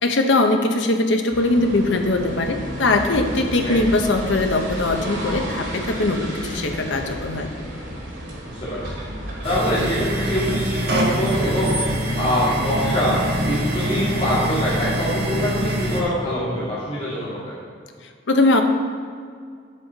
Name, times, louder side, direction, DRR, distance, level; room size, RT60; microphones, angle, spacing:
voice 1, 0.0-7.5 18.3-18.6, left 2 dB, 70° left, 5 dB, 0.9 m, -21 dB
sound 1, 1.3-12.0, equal, 70° right, 2.5 m, -32 dB
voice 2, 8.5-9.0 9.4-11.8 12.2-13.2 13.4-17.5, equal, 30° left, -10 dB, 2.3 m, -24 dB
sound 2, 9.4-16.0, equal, 55° right, 1.3 m, -24 dB
9.6 x 7.6 x 4.0 m, 2.1 s
head